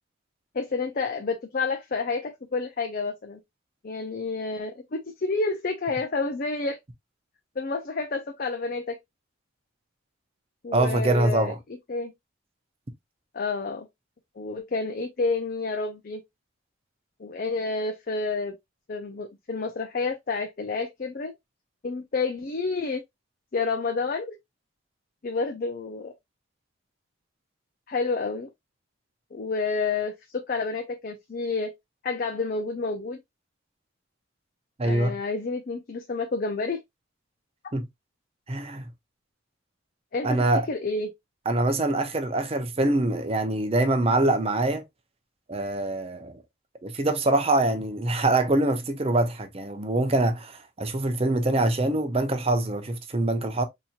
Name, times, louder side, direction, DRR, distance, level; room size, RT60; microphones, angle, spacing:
voice 1, 0.5-3.4 3.8-6.8 7.6-9.0 10.6-11.5 11.9-12.1 13.3-13.9 14.4-16.2 17.2-18.6 18.9-21.3 21.8-23.0 23.5-24.4 25.2-26.1 27.9-28.5 29.3-31.7 32.0-33.2 34.8-36.8 40.1-41.1, left 3 dB, 45° left, 0.5 m, -29 dB
voice 2, 10.7-11.6 34.8-35.1 37.7-37.9 38.5-38.9 40.2-40.7 41.5-44.8 45.5-46.4 46.8-53.6, right 2 dB, 30° right, 0.6 m, -24 dB
4.2 x 2.8 x 2.4 m
head